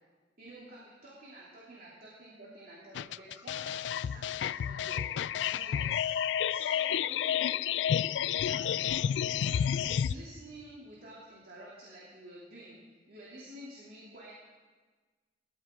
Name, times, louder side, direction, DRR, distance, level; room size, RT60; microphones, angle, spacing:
voice 1, 0.4-7.5 8.2-12.8 13.1-14.3, right 1 dB, 55° right, -6 dB, 2.9 m, -50 dB
sound 1, 2.9-10.1, left 9 dB, 85° left, 0.3 m, -30 dB
19.0 x 13.5 x 3.7 m, 1.4 s
head